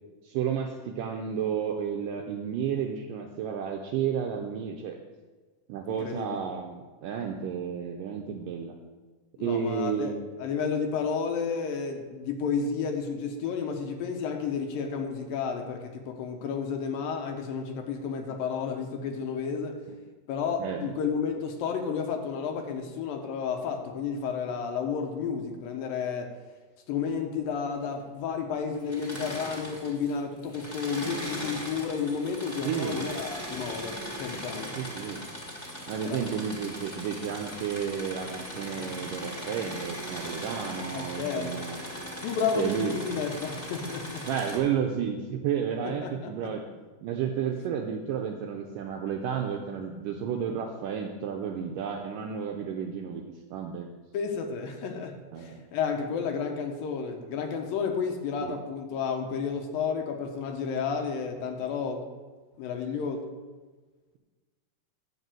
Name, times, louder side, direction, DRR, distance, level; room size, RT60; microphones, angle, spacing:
voice 1, 0.2-5.0 5.7-8.7 9.4-10.2 20.6-20.9 32.7-33.1 34.8-35.3 35.9-41.8 42.6-43.0 44.3-46.6 47.0-53.3 53.5-53.9 55.3-55.6 58.4-58.5, right 7 dB, 80° right, 2 dB, 2.0 m, -32 dB
voice 2, 5.9-6.4 9.4-10.1 10.4-19.8 20.3-26.3 26.9-34.7 36.0-36.3 40.9-41.5 42.2-44.2 45.8-46.5 54.1-62.0 62.6-63.2, left 6 dB, 70° left, 4 dB, 2.5 m, -31 dB
Engine / Mechanisms, 28.8-30.1 30.4-44.6, equal, 10° left, 1.3 m, -39 dB
10.5 x 5.4 x 7.6 m, 1.3 s
omnidirectional pair, 4.5 m